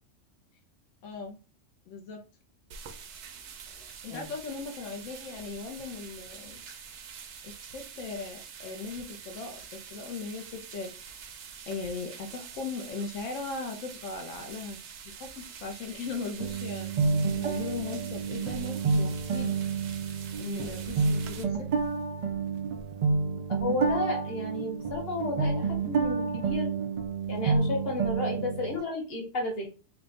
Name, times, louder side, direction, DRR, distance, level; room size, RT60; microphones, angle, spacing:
voice 1, 1.0-1.4 1.9-2.2 4.0-6.6 7.4-9.6 9.9-10.9 11.7-14.8 15.0-16.9 17.4-19.6 20.4-21.7, left 4 dB, 90° left, 3 dB, 1.1 m, -38 dB
sound 1, 2.7-21.4, right 7 dB, 70° right, 0.9 m, -46 dB
sound 2, 16.4-28.8, right 4 dB, 85° right, 0.3 m, -29 dB
voice 2, 23.5-26.7 27.3-29.7, left 2 dB, 55° left, -1 dB, 1.4 m, -32 dB
3.3 x 2.2 x 3.9 m, 0.33 s
omnidirectional pair, 1.3 m